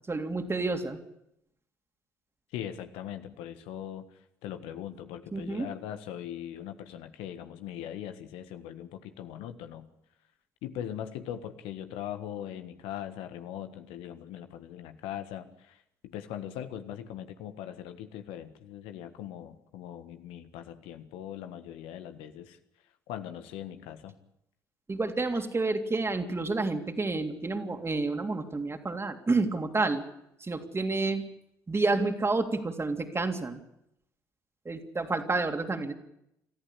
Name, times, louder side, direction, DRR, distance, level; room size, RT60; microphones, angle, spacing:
voice 1, 0.1-1.0 5.3-5.7 24.9-30.0 30.4-31.3 31.7-33.6 34.6-35.9, right 3 dB, 25° right, 5 dB, 3.1 m, -29 dB
voice 2, 2.5-4.0 4.4-9.9 10.6-22.6 23.1-24.1, left 10 dB, 70° left, 8 dB, 1.5 m, -40 dB
26.0 x 14.5 x 8.4 m, 0.80 s
figure-of-eight pair, 50°, 10 cm